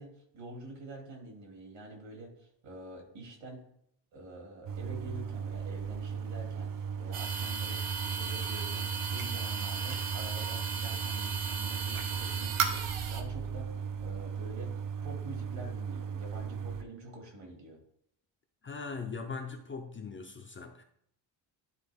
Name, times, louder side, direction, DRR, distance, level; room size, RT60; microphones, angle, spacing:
voice 1, 0.0-3.6 4.1-17.8, right 1 dB, 60° right, 2.4 m, -47 dB
sound 1, 4.7-16.8, right 6 dB, 45° right, 0.4 m, -37 dB
sound 2, 7.1-13.2, right 5 dB, 80° right, 1.0 m, -35 dB
voice 2, 18.6-20.8, left 4 dB, 25° left, 0.4 m, -40 dB
11.5 x 4.3 x 3.4 m
cardioid pair, 175°, 48 cm